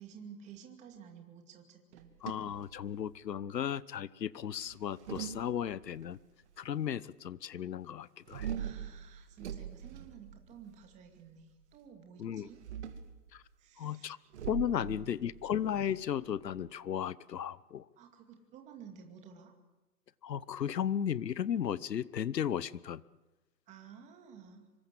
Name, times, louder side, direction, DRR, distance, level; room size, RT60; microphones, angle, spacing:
voice 1, 0.0-2.1 8.5-12.6 13.6-14.2 14.7-15.2 18.0-19.5 23.7-24.7, right 7 dB, 15° right, 4 dB, 2.4 m, -53 dB
sound 1, 1.9-3.3 4.6-6.0 8.3-10.9 12.4-13.2 14.3-16.7, right 9 dB, 45° right, 2.4 m, -42 dB
voice 2, 2.2-6.2 6.6-8.5 12.2-12.5 13.3-13.4 13.8-14.2 14.5-17.8 20.2-23.0, left 9 dB, 85° left, 20 dB, 1.1 m, -35 dB
25.5 x 23.5 x 7.7 m, 1.0 s
hypercardioid pair, 160°, 48 cm